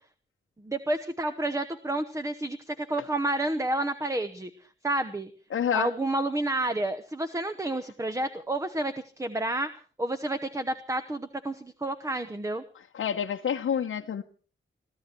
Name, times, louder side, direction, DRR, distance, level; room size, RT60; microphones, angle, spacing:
voice 1, 0.6-4.5 4.8-5.3 5.7-9.7 10.0-12.6, right 1 dB, 15° right, 10 dB, 1.0 m, -30 dB
voice 2, 5.5-5.9 12.9-14.2, left 8 dB, 90° left, 2 dB, 1.0 m, -28 dB
23.0 x 14.0 x 4.5 m, 0.40 s
wide cardioid pair, 125°, 20 cm